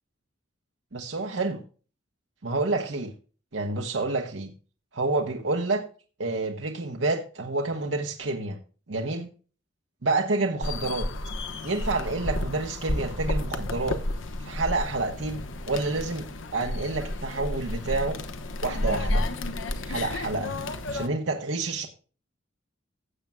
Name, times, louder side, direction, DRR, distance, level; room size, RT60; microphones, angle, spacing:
voice 1, 0.9-1.6 2.4-3.1 3.5-4.5 4.9-5.8 6.2-8.6 8.9-9.3 10.0-11.1 11.6-14.0 14.4-16.3 16.5-18.2 18.6-19.2 19.8-20.5 20.9-21.9, right 3 dB, 70° right, 2 dB, 1.0 m, -28 dB
sound 1, 10.6-21.1, left 1 dB, 85° left, 1.0 m, -31 dB
16.5 x 7.4 x 2.3 m, 0.38 s
head